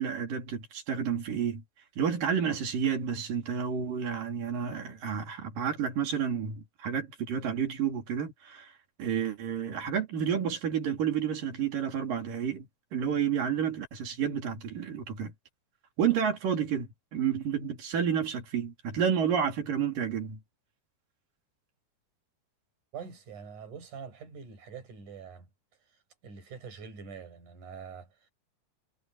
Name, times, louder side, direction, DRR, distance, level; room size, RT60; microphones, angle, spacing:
voice 1, 0.0-1.6 2.0-8.7 9.0-15.3 16.0-20.4, right 8 dB, 90° right, 4.9 m, -30 dB
voice 2, 22.9-25.5 25.9-28.3, right 6 dB, 65° right, 7.5 m, -45 dB
omnidirectional pair, 3.7 m